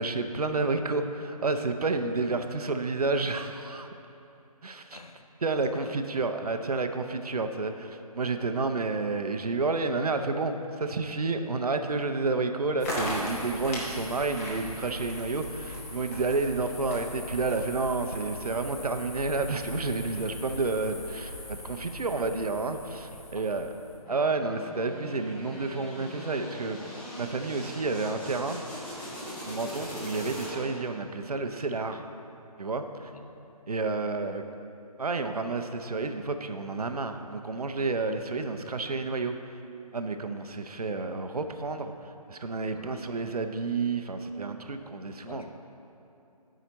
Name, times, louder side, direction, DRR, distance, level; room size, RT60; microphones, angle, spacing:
voice 1, 0.0-3.9 4.6-5.0 5.4-23.7 24.1-26.9 27.2-28.6 29.4-32.1 32.6-33.1 33.7-34.4 35.0-39.5 39.9-45.5, right 3 dB, 70° right, 7 dB, 0.6 m, -30 dB
voice 2, 4.9-5.3 5.5-5.9 23.1-23.6 29.8-30.0 33.1-33.5 42.7-43.2 45.3-45.5, left 4 dB, 65° left, 5 dB, 0.8 m, -48 dB
sound 1, 12.8-24.0, left 1 dB, 25° left, 1.1 m, -39 dB
sound 2, 24.1-30.9, equal, 5° left, 0.5 m, -41 dB
11.0 x 5.0 x 4.0 m, 2.8 s
figure-of-eight pair, 150°, 20 cm